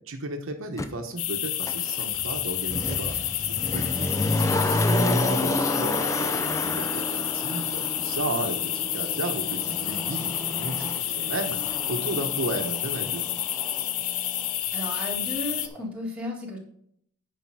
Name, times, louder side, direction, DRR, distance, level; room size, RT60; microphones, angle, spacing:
voice 1, 0.1-3.1 3.5-13.3, right 1 dB, 60° right, 4 dB, 1.0 m, -34 dB
Motor vehicle (road), 0.8-0.9 1.6-14.5 14.8-14.9, left 1 dB, 15° left, 0.5 m, -30 dB
sound 1, 1.2-15.7, left 12 dB, 70° left, 0.6 m, -30 dB
voice 2, 14.7-16.6, left 1 dB, 5° right, -3 dB, 1.9 m, -34 dB
9.9 x 5.1 x 4.7 m, 0.68 s
head